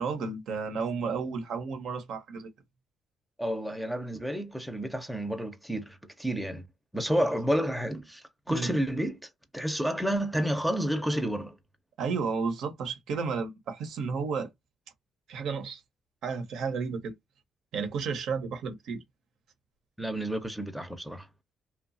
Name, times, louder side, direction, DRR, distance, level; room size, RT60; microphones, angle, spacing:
voice 1, 0.0-2.5 8.5-8.7 12.0-14.5 15.3-15.8 16.2-17.1 17.7-19.0, right 5 dB, 75° right, 0.8 m, -32 dB
voice 2, 3.4-6.6 6.9-11.6 20.0-21.3, equal, ahead, 0.6 m, -30 dB
2.8 x 2.3 x 2.6 m
cardioid pair, 90°, 0 cm